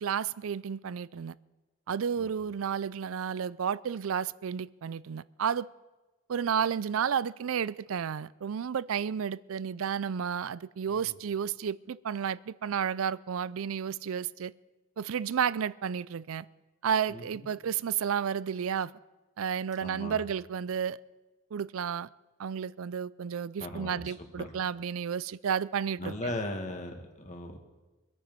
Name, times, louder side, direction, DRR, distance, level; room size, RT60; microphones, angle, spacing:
voice 1, 0.0-1.3 1.9-5.7 6.3-14.5 15.0-16.5 16.8-18.9 19.4-21.0 21.5-22.1 22.4-26.1, right 7 dB, 75° right, 0.4 m, -32 dB
voice 2, 17.1-17.5 19.8-20.2 23.6-24.5 26.0-27.6, left 1 dB, 35° left, 1.8 m, -38 dB
24.5 x 9.2 x 5.4 m
head